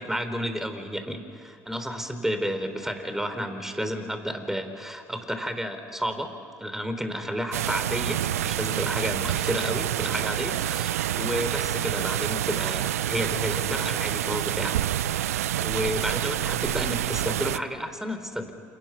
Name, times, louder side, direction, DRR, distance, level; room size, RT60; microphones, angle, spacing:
voice 1, 0.0-14.8 15.6-18.5, equal, 5° right, 8 dB, 3.7 m, -31 dB
sound 1, 7.5-17.6, right 12 dB, 85° right, 0.5 m, -27 dB
29.5 x 28.0 x 5.9 m, 2.6 s
hypercardioid pair, 65°, 8 cm